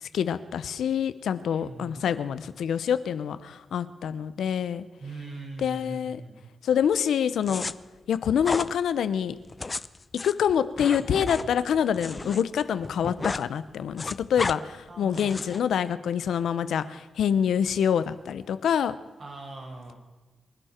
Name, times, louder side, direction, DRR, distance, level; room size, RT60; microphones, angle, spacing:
voice 1, 0.0-4.8 5.6-6.2 6.6-7.7 8.1-9.3 10.2-18.9, left 8 dB, 90° left, 14 dB, 0.9 m, -26 dB
voice 2, 1.5-2.0 5.0-6.4 14.9-15.5 19.2-19.9, right 2 dB, 55° right, 0 dB, 5.3 m, -40 dB
sound 1, 7.4-7.7 8.4-8.7 9.4-12.4 12.7-13.5 13.7-14.6 15.1-15.6, left 3 dB, 35° left, 0.6 m, -33 dB
27.0 x 11.5 x 4.5 m, 1.3 s
cardioid pair, 70°, 0 cm